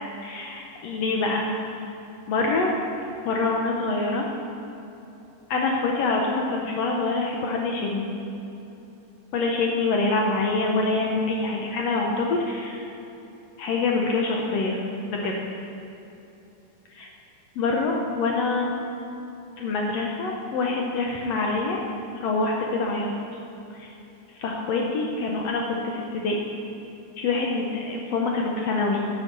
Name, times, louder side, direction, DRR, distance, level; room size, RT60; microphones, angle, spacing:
voice 1, 0.2-1.5 2.3-2.8 3.3-4.3 5.5-8.1 9.3-12.9 13.6-15.6 16.9-17.1 17.5-18.7 19.6-21.8 22.2-23.1 23.7-23.9 24.4-26.4 27.2-29.1, left 3 dB, 75° left, 0 dB, 1.5 m, -25 dB
9.7 x 6.9 x 6.0 m, 3.0 s
omnidirectional pair, 3.9 m